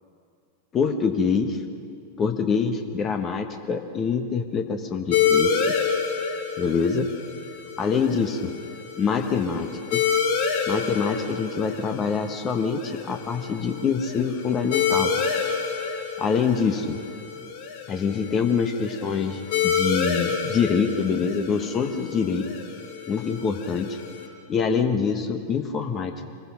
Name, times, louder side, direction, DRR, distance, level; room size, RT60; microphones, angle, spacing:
voice 1, 0.7-1.6 2.2-5.7 6.6-7.1 7.8-8.4 9.0-10.0 10.7-15.1 16.2-17.0 17.9-22.4 23.1-24.0 24.5-26.1, left 5 dB, 25° left, 6 dB, 1.3 m, -25 dB
sound 1, 5.1-24.3, left 6 dB, 50° left, 3.7 m, -28 dB
26.5 x 21.0 x 5.9 m, 2.3 s
figure-of-eight pair, 90°, 0 cm